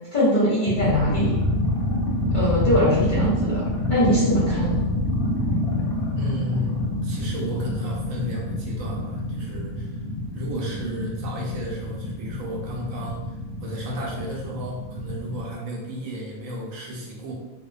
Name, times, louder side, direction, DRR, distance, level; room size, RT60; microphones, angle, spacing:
voice 1, 0.1-1.4 2.3-4.9, equal, 45° left, -8 dB, 0.7 m, -22 dB
sound 1, 0.7-15.5, left 1 dB, 90° left, 1.1 m, -26 dB
voice 2, 6.1-10.0 10.3-13.3 13.6-17.3, equal, 70° right, -2 dB, 0.9 m, -33 dB
2.7 x 2.1 x 2.3 m, 1.1 s
omnidirectional pair, 1.5 m